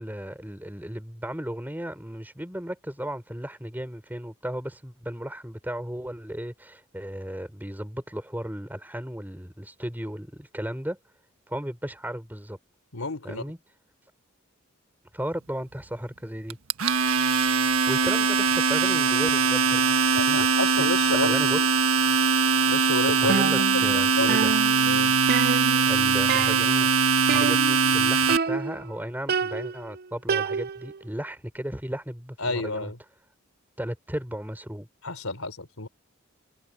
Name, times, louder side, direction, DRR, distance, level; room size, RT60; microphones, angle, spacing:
voice 1, 0.0-11.0 11.5-12.6 13.2-13.6 15.1-16.6 17.9-19.9 20.3-20.5 20.8-20.9 21.2-21.6 23.0-24.5 25.8-26.9 27.3-32.9 33.8-34.9, equal, 10° right, 3.8 m, -35 dB
voice 2, 12.9-13.5 20.1-21.7 22.7-23.4 23.7-24.5 24.8-25.1 32.4-33.0 35.0-35.9, left 2 dB, 85° left, 3.5 m, -31 dB
Domestic sounds home sounds, 16.5-28.4, right 5 dB, 90° right, 1.4 m, -22 dB
sound 1, 23.3-24.0 24.3-26.0 26.3-26.8 27.3-28.0 28.3-28.9 29.3-31.0, right 5 dB, 45° right, 0.5 m, -28 dB
head